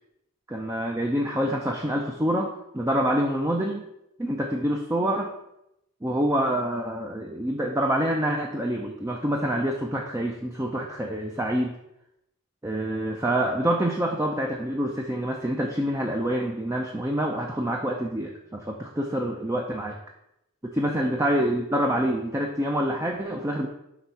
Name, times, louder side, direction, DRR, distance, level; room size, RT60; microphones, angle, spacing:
voice 1, 0.5-3.9 4.2-5.3 6.0-11.7 12.6-19.9 20.6-23.7, right 1 dB, 15° right, 1 dB, 0.4 m, -26 dB
6.0 x 3.5 x 5.4 m, 0.84 s
head